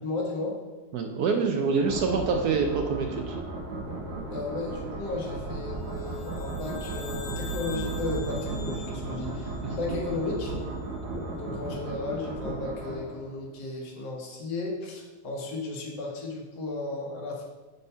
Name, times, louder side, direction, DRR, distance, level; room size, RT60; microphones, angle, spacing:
voice 1, 0.0-0.6 4.3-10.5 11.3-17.4, left 3 dB, 55° left, -2 dB, 1.9 m, -34 dB
voice 2, 0.9-3.4 9.6-9.8, right 4 dB, 70° right, 4 dB, 0.9 m, -26 dB
sound 1, 1.8-13.5, right 3 dB, 55° right, 1.7 m, -35 dB
sound 2, 3.8-7.0 7.3-8.0 8.3-10.0 10.4-10.6 11.0-11.5 12.3-12.6, equal, 10° left, 1.2 m, -43 dB
sound 3, 5.9-10.4, left 6 dB, 80° left, 1.6 m, -46 dB
7.0 x 4.2 x 5.5 m, 1.2 s
omnidirectional pair, 2.3 m